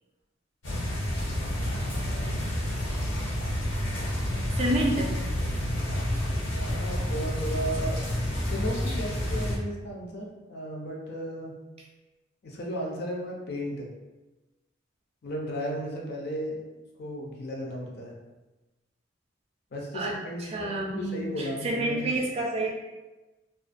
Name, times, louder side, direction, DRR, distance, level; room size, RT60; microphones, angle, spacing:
sound 1, 0.6-9.6, equal, 90° left, 0.8 m, -29 dB
voice 1, 4.5-5.1 19.9-22.7, right 1 dB, 30° right, -1 dB, 0.3 m, -29 dB
voice 2, 6.5-8.1 8.5-11.6 12.4-13.9 15.2-16.6 17.0-18.1 19.7-22.1, equal, 55° left, -2 dB, 0.5 m, -35 dB
2.4 x 2.1 x 2.4 m, 1.1 s
head